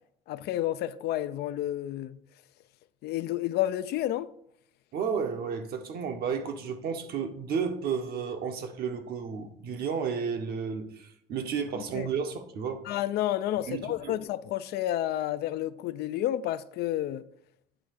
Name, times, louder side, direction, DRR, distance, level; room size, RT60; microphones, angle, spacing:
voice 1, 0.3-2.2 3.0-4.3 11.8-12.1 12.9-17.2, left 13 dB, 75° left, 0.4 m, -30 dB
voice 2, 4.9-12.8 13.7-14.2, right 6 dB, 65° right, 1.1 m, -32 dB
8.8 x 3.5 x 6.5 m
cardioid pair, 110°, 17 cm